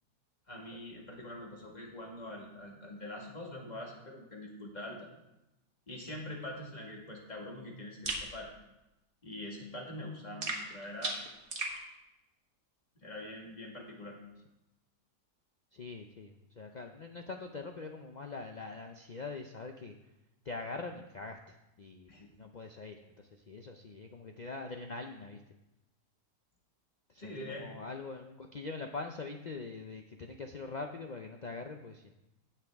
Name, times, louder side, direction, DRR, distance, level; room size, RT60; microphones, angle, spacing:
voice 1, 0.5-5.1 5.9-8.5 9.2-11.2 13.0-14.2 22.1-22.3 27.2-27.7, left 1 dB, 30° left, -1 dB, 1.9 m, -44 dB
sound 1, 8.0-8.3 10.4-11.8, right 2 dB, 40° right, 1.5 m, -36 dB
voice 2, 15.7-19.9 20.4-22.1 22.4-25.4 27.1-32.1, left 3 dB, 70° left, 4 dB, 0.4 m, -43 dB
17.0 x 5.8 x 3.5 m, 0.93 s
omnidirectional pair, 1.6 m